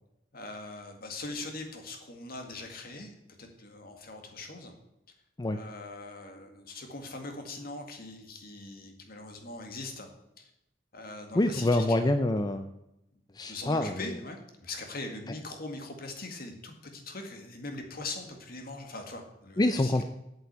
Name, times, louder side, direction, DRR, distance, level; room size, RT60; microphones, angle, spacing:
voice 1, 0.3-4.7 5.5-10.1 10.4-10.5 10.9-12.1 13.5-19.9, left 2 dB, 55° left, 4 dB, 2.0 m, -41 dB
voice 2, 11.3-12.7 13.4-14.0 19.6-20.0, left 1 dB, 20° left, 8 dB, 0.5 m, -26 dB
8.5 x 7.7 x 8.1 m, 0.88 s
head